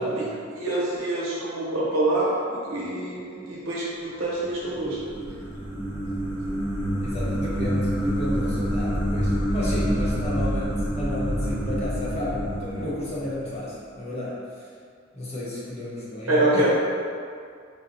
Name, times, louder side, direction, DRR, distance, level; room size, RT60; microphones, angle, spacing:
voice 1, 0.0-0.5 7.0-14.7 15.1-16.7, left 1 dB, 35° left, -7 dB, 0.7 m, -32 dB
voice 2, 0.5-5.0 16.3-16.7, right 1 dB, 85° right, -6 dB, 0.8 m, -25 dB
sound 1, 4.4-13.7, equal, 10° right, 0.6 m, -27 dB
3.9 x 2.0 x 2.6 m, 2.2 s
head